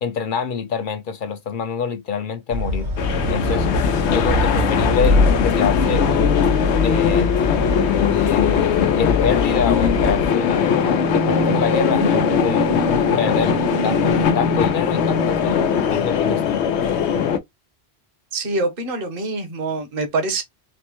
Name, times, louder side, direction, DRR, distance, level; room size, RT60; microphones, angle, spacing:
voice 1, 0.0-2.9 3.3-3.7 4.1-6.0 6.8-7.3 8.1-10.7 11.1-12.7 13.2-13.5 13.8-15.7 15.9-16.6, left 6 dB, 55° left, 0.7 m, -26 dB
sound 1, 2.5-10.3, left 2 dB, 85° right, 2.4 m, -23 dB
sound 2, 3.0-17.4, left 7 dB, 90° left, 0.9 m, -20 dB
sound 3, 10.2-16.5, right 3 dB, 35° right, 0.5 m, -27 dB
voice 2, 18.3-20.4, right 3 dB, 55° right, 1.1 m, -25 dB
4.3 x 2.1 x 2.9 m
omnidirectional pair, 1.1 m